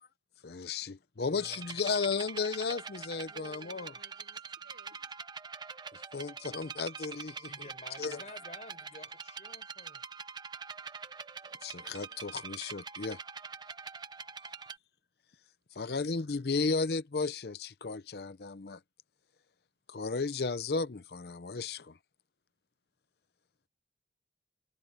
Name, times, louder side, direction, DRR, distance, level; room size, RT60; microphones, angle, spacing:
voice 1, 0.4-3.9 5.9-7.5 8.0-8.2 11.6-13.2 15.8-18.8 19.9-21.9, left 4 dB, 60° left, 0.6 m, -34 dB
voice 2, 1.2-1.6 7.5-10.0, left 2 dB, 40° left, 5.1 m, -51 dB
sound 1, 1.4-14.8, right 5 dB, 25° right, 0.8 m, -44 dB
voice 3, 3.1-5.0 11.4-12.3 14.2-14.7 15.7-16.2, right 2 dB, 75° right, 6.4 m, -59 dB
head